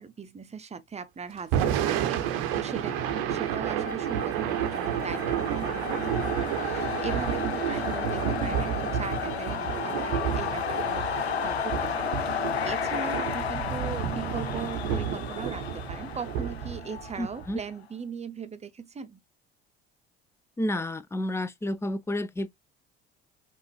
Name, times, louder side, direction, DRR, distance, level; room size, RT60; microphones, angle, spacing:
voice 1, 0.0-3.0 3.3-19.2, right 6 dB, 20° right, 0.8 m, -39 dB
Thunder / Rain, 1.4-17.6, right 10 dB, 65° right, 0.9 m, -31 dB
Bowed string instrument, 1.6-12.1, left 4 dB, 45° left, 1.5 m, -41 dB
sound 1, 3.8-17.6, left 9 dB, 85° left, 0.6 m, -33 dB
voice 2, 17.2-17.6 20.6-22.5, left 1 dB, 10° left, 0.5 m, -30 dB
5.7 x 2.5 x 3.2 m
figure-of-eight pair, 55°, 31 cm